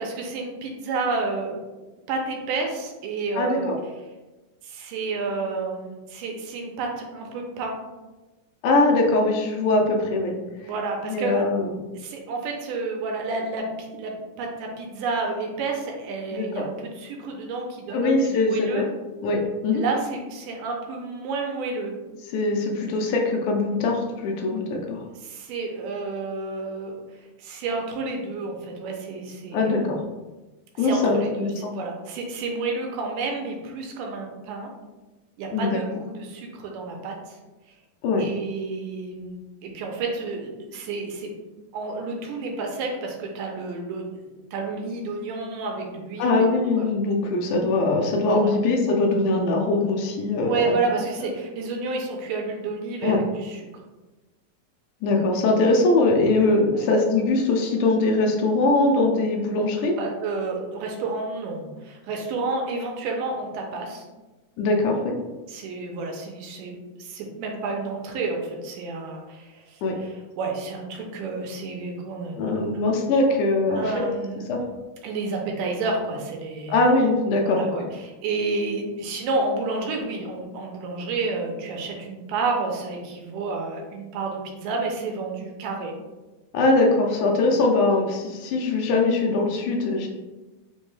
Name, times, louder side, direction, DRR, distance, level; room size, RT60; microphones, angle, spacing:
voice 1, 0.0-1.6 2.1-3.7 4.6-7.8 10.6-11.4 11.9-18.9 19.7-21.9 25.1-29.9 30.8-34.7 35.4-37.4 38.2-41.3 41.7-44.1 44.5-46.5 46.8-46.9 48.4-48.5 50.4-53.7 56.7-56.9 60.0-64.1 65.5-72.4 72.7-72.8 73.7-74.4 75.0-76.9 77.4-85.9, right 3 dB, 85° right, 1 dB, 2.2 m, -30 dB
voice 2, 3.4-3.8 8.6-10.4 11.1-11.7 16.3-16.7 17.9-18.9 19.2-19.8 22.3-25.0 29.5-30.0 30.8-31.7 35.5-35.8 38.0-38.2 46.2-50.8 53.0-53.2 55.0-60.0 64.6-65.2 69.8-70.0 72.4-73.9 74.5-74.6 76.7-77.9 86.5-90.1, left 2 dB, 80° left, 1 dB, 1.9 m, -22 dB
5.2 x 2.1 x 3.1 m, 1.1 s
omnidirectional pair, 3.8 m